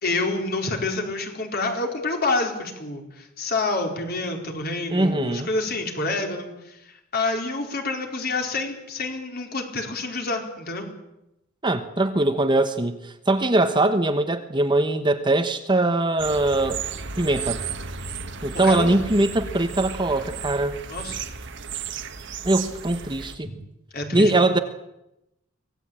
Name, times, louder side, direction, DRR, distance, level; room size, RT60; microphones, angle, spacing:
voice 1, 0.0-10.9 18.6-19.0 20.9-21.2 23.4-23.6 23.9-24.4, left 2 dB, 50° left, 3 dB, 4.5 m, -28 dB
voice 2, 4.9-5.5 11.6-16.8 17.2-17.6 18.4-20.8 22.4-23.5 24.1-24.6, right 2 dB, 25° right, 8 dB, 1.2 m, -21 dB
sound 1, 16.2-23.4, right 6 dB, 60° right, 1.6 m, -34 dB
24.0 x 18.0 x 8.8 m, 0.89 s
head